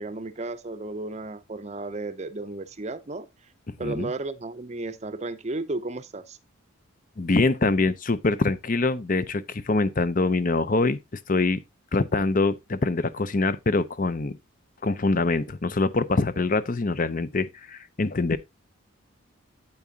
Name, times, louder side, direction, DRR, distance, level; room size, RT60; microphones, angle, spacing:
voice 1, 0.0-3.3 3.8-6.4, right 2 dB, 30° right, 0.6 m, -33 dB
voice 2, 7.2-11.0 11.3-11.6 11.9-14.4 14.8-18.4, left 3 dB, 40° left, 0.6 m, -24 dB
8.8 x 8.4 x 2.8 m
head